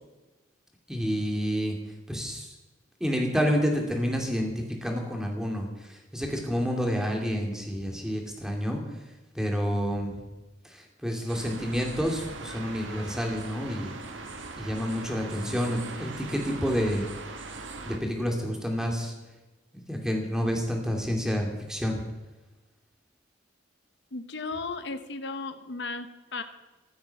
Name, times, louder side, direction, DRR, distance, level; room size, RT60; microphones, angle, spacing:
voice 1, 0.9-1.8 2.1-2.5 3.0-4.5 4.8-8.8 9.3-10.2 10.6-13.9 14.5-17.1 17.9-19.1 19.7-22.0, equal, 5° right, 1 dB, 2.4 m, -29 dB
sound 1, 11.3-18.0, right 3 dB, 75° right, 1.7 m, -40 dB
voice 2, 24.1-26.4, left 3 dB, 60° left, 10 dB, 0.9 m, -35 dB
15.0 x 11.5 x 5.8 m, 1.1 s
head